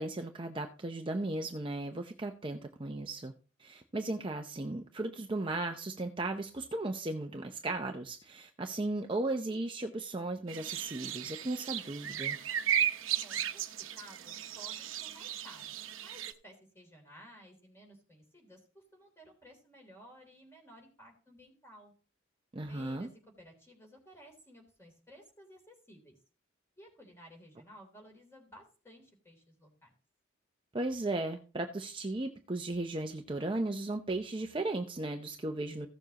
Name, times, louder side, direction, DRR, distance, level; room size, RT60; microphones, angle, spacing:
voice 1, 0.0-3.3 3.6-12.4 22.5-23.1 30.7-35.9, right 2 dB, 25° right, 4 dB, 0.6 m, -36 dB
sound 1, 10.5-16.3, right 10 dB, 85° right, 0.9 m, -35 dB
voice 2, 13.1-21.9 22.7-23.1 23.4-26.1 26.8-29.9, equal, 15° left, 1 dB, 3.3 m, -56 dB
15.5 x 7.1 x 2.9 m, 0.36 s
head